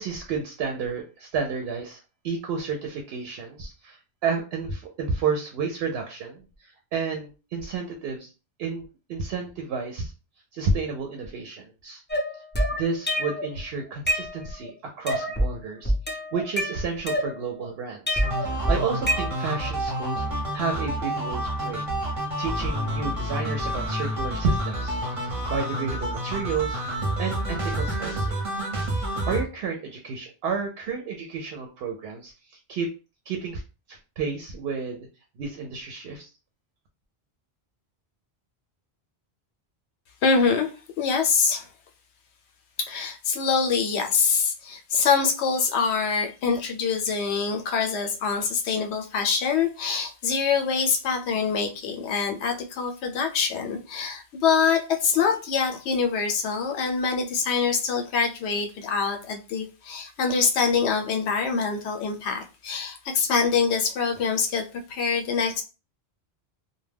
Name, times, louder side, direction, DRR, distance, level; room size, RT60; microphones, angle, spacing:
voice 1, 0.0-8.3 8.6-10.1 10.5-12.0 12.3-12.4 12.8-21.8 22.4-25.0 25.2-26.8 27.2-28.4 28.9-32.9 33.3-33.6 33.9-35.1 35.4-36.3, right 5 dB, 70° right, 0.8 m, -31 dB
sound 1, 12.1-13.5 13.9-14.7 15.1-15.5 15.8-17.6 18.1-19.7, equal, 15° left, 0.4 m, -26 dB
sound 2, 18.2-29.4, right 1 dB, 35° right, 0.7 m, -29 dB
voice 2, 40.2-40.7 41.0-41.7 42.8-65.6, left 5 dB, 85° left, 0.9 m, -25 dB
2.2 x 2.1 x 3.3 m
omnidirectional pair, 1.1 m